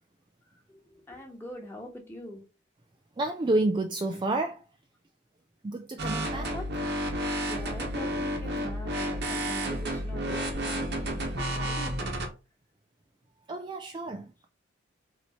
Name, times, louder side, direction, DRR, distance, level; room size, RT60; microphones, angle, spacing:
voice 1, 0.9-2.4 6.3-6.7 7.5-12.2, equal, 10° left, 1.2 m, -43 dB
voice 2, 3.2-4.6 5.6-6.5 13.5-14.5, right 2 dB, 20° right, 0.3 m, -29 dB
sound 1, 6.0-12.3, equal, 50° right, 1.0 m, -31 dB
4.1 x 3.0 x 4.2 m
head